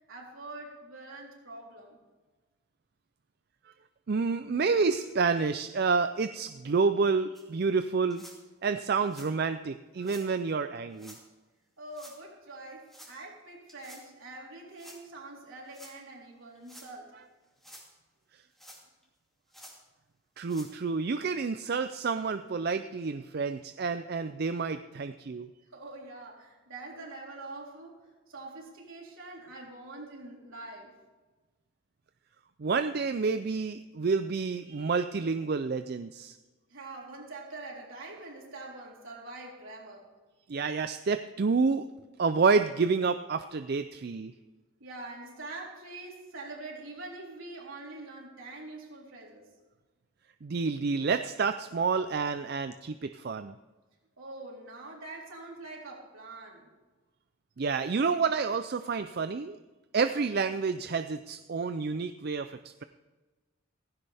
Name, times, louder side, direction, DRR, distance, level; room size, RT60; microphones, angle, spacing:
voice 1, 0.1-2.0 11.8-17.1 25.7-30.9 36.7-40.1 44.8-49.5 54.2-56.7, right 2 dB, 70° right, -2 dB, 3.8 m, -44 dB
voice 2, 4.1-8.2 8.6-11.2 20.4-25.5 32.6-36.4 40.5-41.9 42.2-44.3 50.4-53.5 57.6-59.6 59.9-62.8, right 4 dB, 50° right, 10 dB, 0.4 m, -29 dB
sound 1, 7.3-7.4 8.1-8.4 9.0-9.3 10.0-10.3 10.9-11.2 11.9-12.2 12.9-13.1 13.7-14.0 14.7-15.0 15.7-15.9 16.5-16.9 17.4-17.9 18.5-19.0 19.5-19.8 20.4-20.7 21.3-21.4 21.9-22.0 22.7-22.8, equal, ahead, 2.6 m, -51 dB
16.5 x 15.5 x 3.5 m, 1.2 s
head